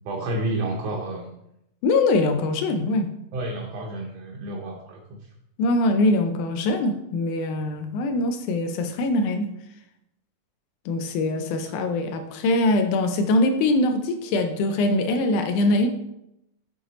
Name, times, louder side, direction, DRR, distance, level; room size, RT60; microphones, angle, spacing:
voice 1, 0.0-1.3 3.3-5.2, right 1 dB, 75° right, 0 dB, 1.6 m, -30 dB
voice 2, 1.8-3.1 5.6-9.5 10.9-15.9, left 2 dB, 80° left, 7 dB, 2.0 m, -23 dB
7.6 x 3.8 x 4.0 m, 0.84 s
omnidirectional pair, 3.7 m